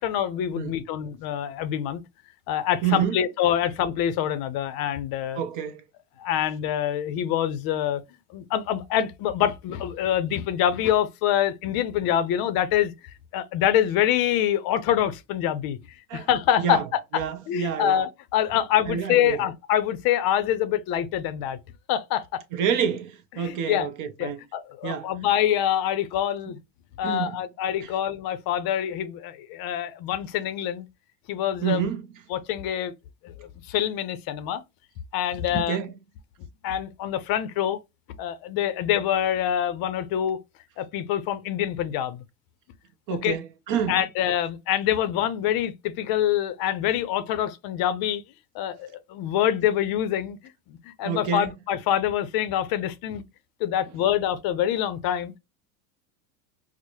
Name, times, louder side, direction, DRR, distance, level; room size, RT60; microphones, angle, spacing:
voice 1, 0.0-2.0 2.5-5.4 6.2-8.0 8.3-12.9 13.3-15.8 16.1-16.8 17.5-21.6 21.9-22.4 23.4-23.9 24.2-26.6 27.0-30.9 31.3-31.8 32.3-32.9 33.2-34.6 35.1-35.8 36.6-37.8 38.2-40.4 40.8-42.2 43.1-43.4 43.9-48.2 48.5-50.4 50.7-53.2 53.6-55.4, left 10 dB, 50° left, 0.5 m, -25 dB
voice 2, 2.8-3.2 5.3-5.8 16.1-16.3 16.6-16.9 17.1-18.0 18.9-19.4 22.5-24.4 24.8-25.1 27.0-27.4 27.8-27.9 31.6-32.1 35.5-35.9 43.1-44.0 51.0-51.5, right 8 dB, 40° right, 0.5 m, -28 dB
4.5 x 2.1 x 2.7 m
supercardioid pair, 110°, 49 cm